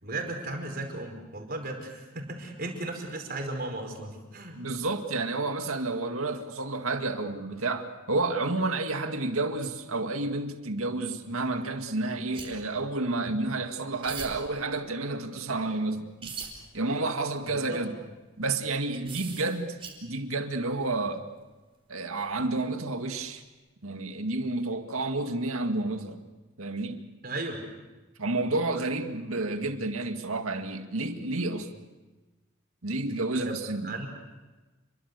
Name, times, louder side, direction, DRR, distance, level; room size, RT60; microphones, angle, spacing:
voice 1, 0.0-4.6 17.5-17.8 27.2-27.6 33.4-33.5 33.8-34.1, right 2 dB, 45° right, 3 dB, 4.9 m, -35 dB
voice 2, 4.6-16.3 16.7-17.9 18.4-19.7 20.0-21.2 21.9-23.4 23.8-26.2 26.6-27.1 28.2-31.7 32.8-34.0, right 2 dB, 90° right, 6 dB, 2.1 m, -30 dB
sound 1, 12.3-12.5 13.2-13.3 14.0-14.3 16.2-16.5 17.9-18.0 18.9-19.9 22.3-22.5, right 6 dB, 25° right, 4.8 m, -39 dB
29.0 x 23.0 x 6.8 m, 1.2 s
head